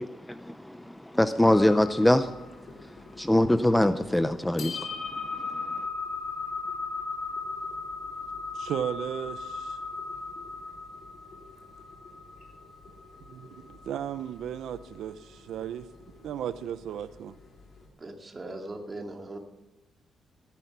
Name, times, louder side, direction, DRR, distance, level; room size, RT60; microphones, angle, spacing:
voice 1, 0.0-2.9 3.2-5.7, left 1 dB, 5° left, 0.5 m, -25 dB
sound 1, 1.5-17.9, left 4 dB, 55° left, 3.7 m, -38 dB
voice 2, 8.5-9.8 13.3-15.9 16.2-17.3, right 9 dB, 85° right, 0.6 m, -35 dB
voice 3, 18.0-19.4, right 2 dB, 25° right, 2.2 m, -39 dB
15.5 x 11.5 x 5.9 m
cardioid pair, 140°, 0 cm